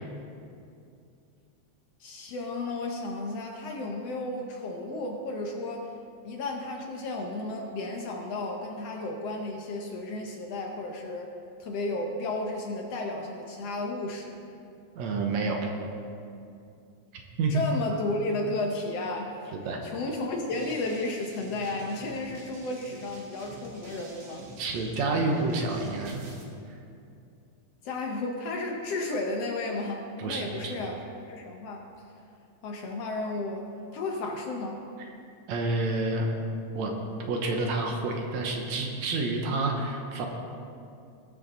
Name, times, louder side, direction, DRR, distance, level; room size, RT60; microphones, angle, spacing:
voice 1, 2.0-5.9 6.2-11.4 11.6-14.4 17.5-19.5 19.8-24.5 27.8-31.0 31.3-31.9 32.6-33.7 33.9-34.8, left 2 dB, 70° left, 2 dB, 1.7 m, -33 dB
voice 2, 15.0-15.6 17.4-17.6 19.7-19.8 24.6-26.2 30.2-30.7 35.5-36.3 36.8-36.9 37.3-40.3, right 3 dB, 70° right, 2 dB, 2.2 m, -28 dB
sound 1, 20.5-26.4, right 2 dB, 45° right, 2.0 m, -48 dB
19.5 x 6.5 x 4.0 m, 2.5 s
omnidirectional pair, 3.4 m